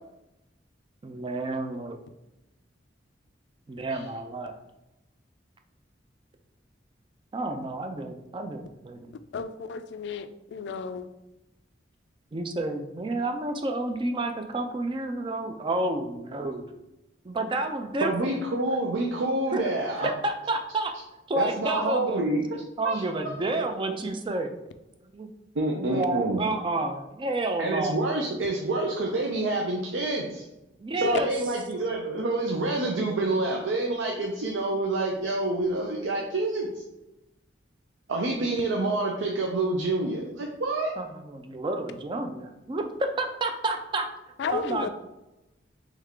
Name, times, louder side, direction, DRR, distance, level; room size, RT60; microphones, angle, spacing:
voice 1, 1.0-2.0 3.7-4.5 7.3-9.1 12.3-16.7 17.2-18.4 19.5-19.6 20.0-20.9 21.3-22.3 22.8-24.5 25.8-28.0 30.8-31.3 41.0-44.1 44.5-44.9, right 2 dB, 25° right, 5 dB, 0.4 m, -30 dB
voice 2, 9.3-11.1 31.0-31.1 44.4-44.9, left 5 dB, 65° left, 11 dB, 0.3 m, -33 dB
voice 3, 18.0-20.1 21.3-22.4 22.8-23.0 25.6-26.4 27.6-30.5 31.0-36.7 38.1-41.0, right 2 dB, 80° right, 0 dB, 0.5 m, -27 dB
3.5 x 3.2 x 3.6 m, 0.95 s
head